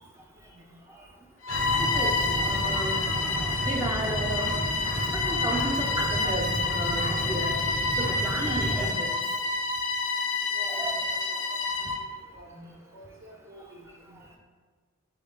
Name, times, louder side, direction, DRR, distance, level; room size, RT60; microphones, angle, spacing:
Bowed string instrument, 1.4-12.0, left 3 dB, 70° left, 0.5 m, -28 dB
sound 1, 1.5-8.9, right 1 dB, 40° right, 0.7 m, -32 dB
voice 1, 1.8-2.2 2.4-3.0 3.7-4.6 5.1-7.5 8.0-9.2 10.7-10.9, right 1 dB, 15° right, 0 dB, 0.3 m, -33 dB
voice 2, 12.3-13.8, right 2 dB, 75° right, -2 dB, 0.9 m, -47 dB
4.0 x 3.6 x 3.6 m, 1.4 s
head